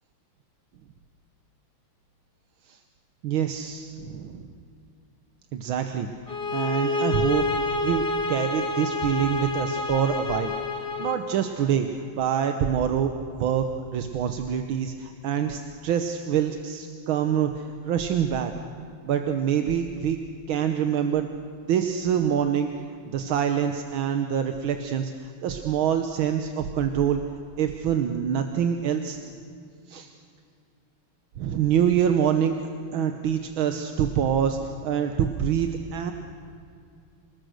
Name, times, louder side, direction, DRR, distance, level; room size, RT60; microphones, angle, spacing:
voice 1, 3.2-4.5 5.5-6.1 6.5-18.5 19.0-20.2 20.5-21.3 21.7-22.7 23.1-27.2 27.6-29.2 29.9-30.1 31.4-32.6 32.9-36.1, right 8 dB, 80° right, 6 dB, 1.8 m, -26 dB
sound 1, 6.3-11.2, left 3 dB, 30° left, 1.4 m, -28 dB
26.5 x 20.0 x 6.5 m, 2.3 s
omnidirectional pair, 2.2 m